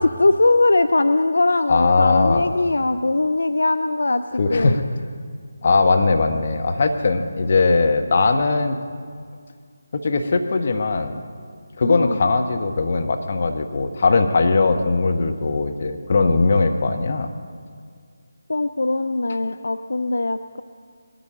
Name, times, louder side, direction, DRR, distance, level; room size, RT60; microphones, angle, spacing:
voice 1, 0.0-4.2 4.5-4.8 11.9-12.2 18.5-20.6, left 2 dB, 70° left, 10 dB, 0.4 m, -20 dB
voice 2, 1.7-2.5 4.4-4.8 5.6-8.8 9.9-11.2 11.8-17.3, left 3 dB, 45° left, 6 dB, 1.1 m, -19 dB
20.5 x 13.5 x 3.8 m, 2.1 s
figure-of-eight pair, 160°, 0 cm